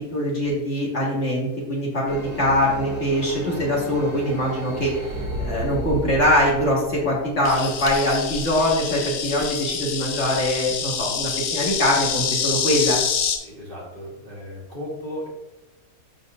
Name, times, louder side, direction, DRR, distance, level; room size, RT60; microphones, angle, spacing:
voice 1, 0.0-5.0 5.4-13.0, equal, 50° left, -4 dB, 1.8 m, -23 dB
sound 1, 2.1-7.8, right 1 dB, 10° right, 1.5 m, -32 dB
Insect, 7.4-13.4, left 7 dB, 80° left, 1.3 m, -27 dB
voice 2, 13.4-15.3, left 1 dB, 35° right, -6 dB, 2.5 m, -35 dB
12.0 x 4.0 x 2.5 m, 0.96 s
omnidirectional pair, 1.6 m